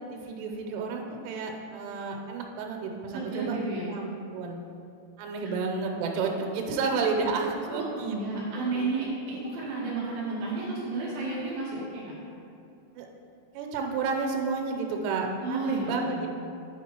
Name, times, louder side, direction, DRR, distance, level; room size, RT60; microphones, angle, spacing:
voice 1, 0.1-3.6 3.9-4.6 5.2-8.2 8.6-9.1 12.9-13.1 13.5-16.3, right 4 dB, 90° right, 2 dB, 3.1 m, -31 dB
voice 2, 3.1-3.9 6.8-6.9 7.7-12.1 15.4-16.3, right 3 dB, 65° right, -6 dB, 2.6 m, -32 dB
9.2 x 4.3 x 4.4 m, 2.6 s
omnidirectional pair, 5.4 m